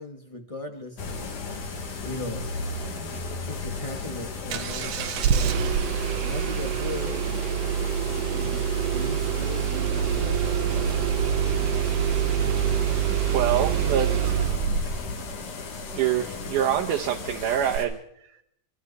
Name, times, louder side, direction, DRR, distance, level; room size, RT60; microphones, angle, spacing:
voice 1, 0.0-1.4 2.0-2.5 3.5-5.6 6.2-7.5 8.3-10.9, left 2 dB, 20° left, 5 dB, 0.8 m, -38 dB
sound 1, 1.0-17.9, left 3 dB, 80° left, 3.7 m, -36 dB
Engine starting, 4.5-15.1 17.7-17.8, right 9 dB, 65° right, 1.9 m, -26 dB
sound 2, 9.8-15.2, left 1 dB, 65° left, 4.6 m, -35 dB
voice 2, 13.3-14.1 15.9-18.0, right 10 dB, 80° right, 1 dB, 2.5 m, -25 dB
25.5 x 25.0 x 4.2 m, 0.73 s
omnidirectional pair, 3.6 m